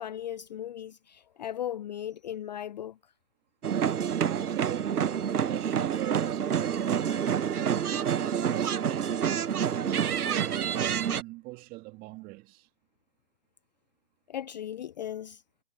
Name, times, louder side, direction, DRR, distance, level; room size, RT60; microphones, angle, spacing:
voice 1, 0.0-3.0 14.3-15.4, left 10 dB, 30° left, 0.7 m, -37 dB
sound 1, 3.6-11.2, right 8 dB, 75° right, 0.9 m, -28 dB
voice 2, 4.3-9.1 9.8-12.7, right 22 dB, 20° right, 2.1 m, -41 dB
figure-of-eight pair, 140°, 45 cm